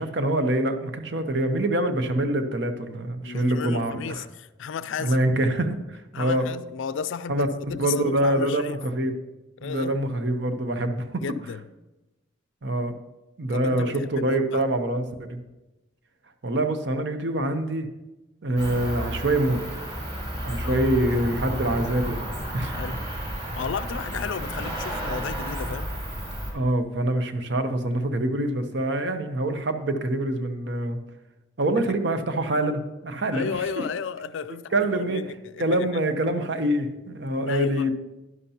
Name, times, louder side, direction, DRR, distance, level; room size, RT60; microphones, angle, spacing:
voice 1, 0.0-4.3 5.0-6.5 7.3-7.5 7.8-9.1 9.6-11.2 12.6-12.9 13.4-15.4 16.4-17.9 18.4-19.6 20.1-22.3 22.5-22.8 26.5-31.0 31.6-33.8 34.7-35.2 35.6-37.9, right 1 dB, 60° right, 0.8 m, -25 dB
voice 2, 3.2-5.3 6.1-8.8 9.6-10.0 11.2-11.6 13.5-14.6 20.6-20.8 22.7-23.0 23.5-25.9 31.8-31.9 33.3-35.9 37.4-37.9, left 6 dB, 70° left, 0.4 m, -34 dB
Cricket, 18.6-26.5, equal, 30° right, 2.4 m, -32 dB
11.0 x 11.0 x 2.9 m
head